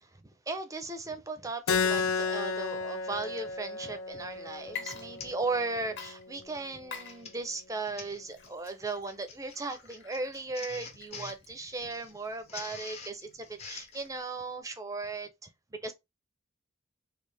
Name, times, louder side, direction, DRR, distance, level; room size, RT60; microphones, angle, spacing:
voice 1, 0.0-15.9, right 3 dB, 15° right, 0.5 m, -37 dB
Keyboard (musical), 1.7-6.8, left 5 dB, 85° left, 0.4 m, -33 dB
Printer, 3.2-3.5 4.1-4.3 4.6-4.7 5.2-5.5 5.8-6.1 6.8-14.1, left 4 dB, 30° left, 0.7 m, -47 dB
Water / Liquid, 4.6-5.6 6.0-14.2, left 7 dB, 60° left, 1.1 m, -48 dB
3.3 x 2.4 x 3.3 m
head